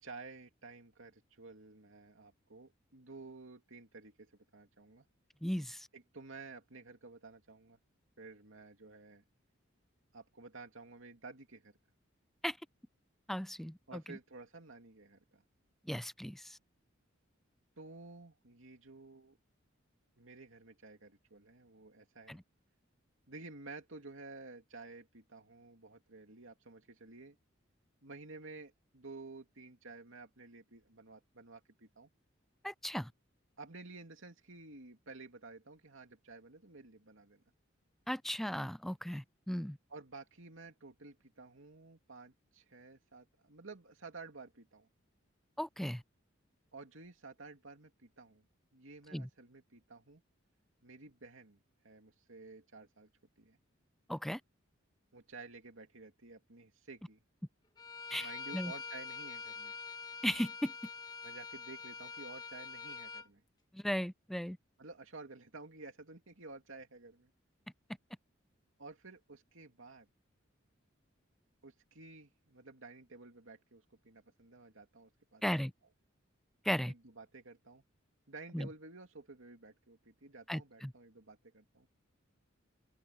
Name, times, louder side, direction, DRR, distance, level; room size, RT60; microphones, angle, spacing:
voice 1, 0.0-5.1 5.9-7.8 8.2-9.2 10.1-11.7 13.9-15.4 17.8-19.4 20.2-22.4 23.3-27.4 28.0-32.1 33.6-37.4 39.9-44.9 46.7-48.4 48.7-50.2 50.8-51.6 51.8-53.1 53.4-53.6 55.1-57.2 58.2-59.8 61.2-63.4 64.8-67.3 68.8-70.1 71.6-75.6 76.9-77.8 78.3-81.9, right 3 dB, 85° right, 2.6 m, -52 dB
voice 2, 5.4-5.9 12.4-12.6 13.3-13.8 15.9-16.6 22.3-22.4 32.6-33.1 38.1-39.8 45.6-46.0 49.1-49.3 54.1-54.4 58.1-58.3 58.5-58.7 60.2-60.7 63.7-64.6 75.4-75.7 76.7-76.9 78.5-78.7 80.5-80.9, equal, ahead, 0.3 m, -36 dB
Bowed string instrument, 57.8-63.3, left 5 dB, 20° left, 1.6 m, -45 dB
open air
head